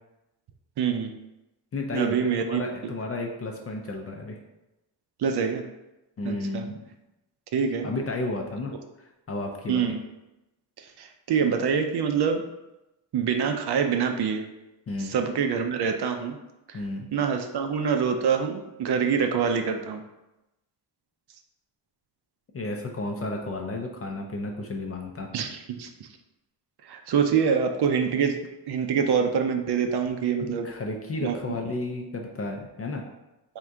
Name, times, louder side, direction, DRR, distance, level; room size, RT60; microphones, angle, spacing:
voice 1, 0.8-1.1 1.9-2.6 5.2-5.6 6.2-6.6 7.5-7.9 9.7-10.0 10.8-12.4 13.1-14.5 15.0-16.4 16.7-16.8 17.1-20.0 25.3-25.9 26.9-28.4 28.7-30.7 31.2-31.4, right 6 dB, 60° right, 5 dB, 0.5 m, -25 dB
voice 2, 1.7-4.4 6.2-6.8 7.8-9.9 14.9-15.2 16.7-17.1 22.5-25.3 30.5-33.1, left 2 dB, 35° left, 2 dB, 0.4 m, -32 dB
3.6 x 2.6 x 4.4 m, 0.95 s
wide cardioid pair, 160°, 46 cm